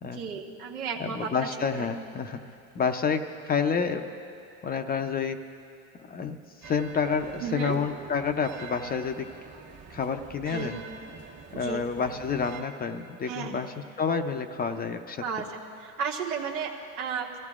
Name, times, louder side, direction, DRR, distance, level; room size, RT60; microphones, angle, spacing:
voice 1, 0.0-1.5 1.8-1.9 7.4-7.8 10.5-10.8 11.5-11.8 13.3-13.7 15.2-15.5 15.8-17.4, right 6 dB, 90° right, 1 dB, 1.5 m, -33 dB
voice 2, 1.0-2.4 2.8-4.0 4.6-5.4 6.1-6.4 6.6-9.3 9.9-10.8 11.5-15.2, left 6 dB, 20° left, 7 dB, 0.5 m, -29 dB
sound 1, 6.6-12.6, right 5 dB, 35° right, 1.4 m, -46 dB
23.0 x 15.5 x 2.4 m, 2.5 s
supercardioid pair, 110°, 42 cm